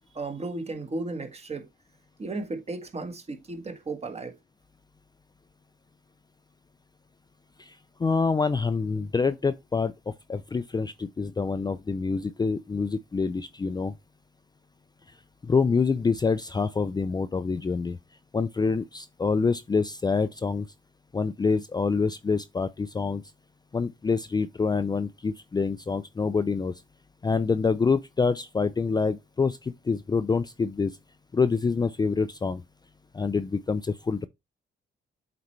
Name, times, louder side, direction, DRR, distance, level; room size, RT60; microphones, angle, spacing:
voice 1, 0.1-1.7 2.2-4.3, right 3 dB, 30° right, 1.5 m, -34 dB
voice 2, 7.6-13.9 15.4-18.0 18.3-20.7 21.1-23.2 23.7-26.7 27.2-31.0 31.3-32.6 33.1-34.3, left 4 dB, 20° left, 0.4 m, -26 dB
8.0 x 4.3 x 3.2 m
cardioid pair, 90°, 20 cm